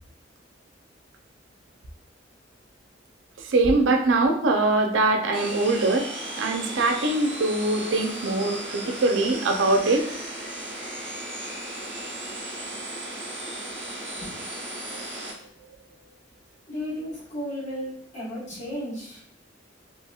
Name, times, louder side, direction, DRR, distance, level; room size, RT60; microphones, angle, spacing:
voice 1, 3.4-6.1 6.4-10.1, right 2 dB, 85° right, 4 dB, 0.4 m, -22 dB
sound 1, 5.3-15.3, right 1 dB, 25° right, 0.8 m, -35 dB
voice 2, 16.7-19.2, equal, 40° left, -7 dB, 1.3 m, -34 dB
2.9 x 2.8 x 2.3 m, 0.66 s
head